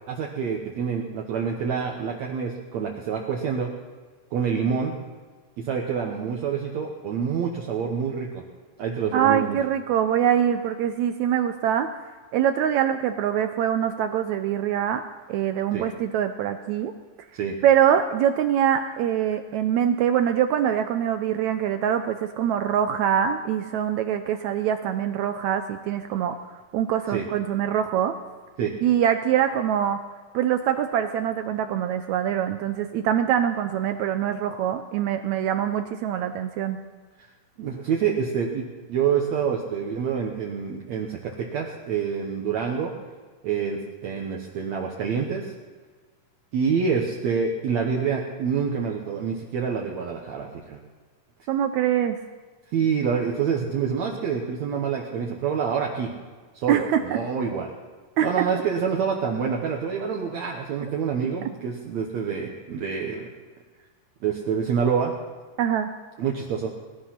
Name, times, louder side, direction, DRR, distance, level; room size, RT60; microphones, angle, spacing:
voice 1, 0.1-3.7 4.3-4.9 5.6-8.4 8.8-9.6 15.7-15.8 17.3-17.6 27.1-27.3 28.6-28.7 37.6-42.9 43.4-45.5 46.5-50.8 52.7-56.1 56.5-57.7 58.2-63.3 64.2-65.1 66.2-66.7, right 6 dB, 65° right, 0 dB, 2.2 m, -27 dB
voice 2, 9.1-11.9 12.3-15.0 15.3-16.9 17.6-28.1 28.8-30.0 30.3-36.8 51.5-52.2 56.7-57.0 58.2-58.3 65.6-65.9, right 9 dB, 80° right, 8 dB, 1.7 m, -24 dB
20.0 x 12.0 x 5.8 m, 1.4 s
omnidirectional pair, 3.9 m